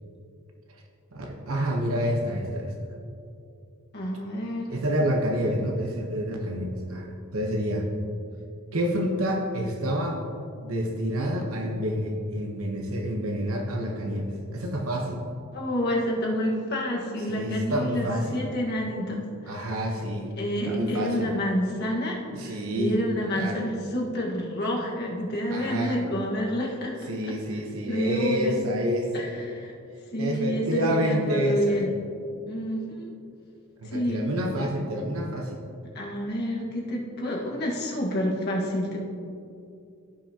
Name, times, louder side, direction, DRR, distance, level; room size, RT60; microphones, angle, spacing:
voice 1, 1.1-2.7 4.7-7.8 8.7-10.2 10.6-15.2 17.3-18.4 19.5-20.3 20.6-21.3 22.3-23.0 23.3-23.6 25.5-26.0 27.1-29.3 30.2-31.8 33.8-35.6, equal, 85° right, 1 dB, 1.0 m, -28 dB
voice 2, 3.9-4.8 15.5-19.2 19.4-19.8 20.4-27.0 27.3-27.6 27.9-28.6 29.1-29.7 30.1-31.9 32.5-33.1 33.8-34.3 35.9-39.0, equal, 50° left, -2 dB, 1.5 m, -29 dB
15.0 x 5.8 x 2.9 m, 2.5 s
head